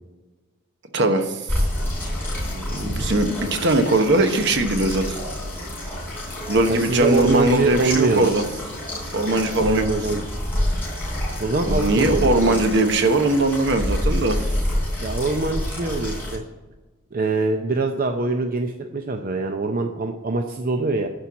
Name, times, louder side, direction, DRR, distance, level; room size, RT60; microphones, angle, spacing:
voice 1, 0.9-1.4 3.0-5.2 6.5-8.4 9.1-10.2 11.7-14.4, right 2 dB, 60° right, 6 dB, 1.1 m, -20 dB
sound 1, 1.5-16.4, left 1 dB, 10° left, 3.3 m, -28 dB
voice 2, 2.4-3.2 6.7-8.3 9.6-10.2 11.4-12.6 15.0-16.4 17.1-21.1, right 3 dB, 45° right, 4 dB, 0.6 m, -24 dB
11.5 x 4.5 x 7.2 m, 1.2 s
head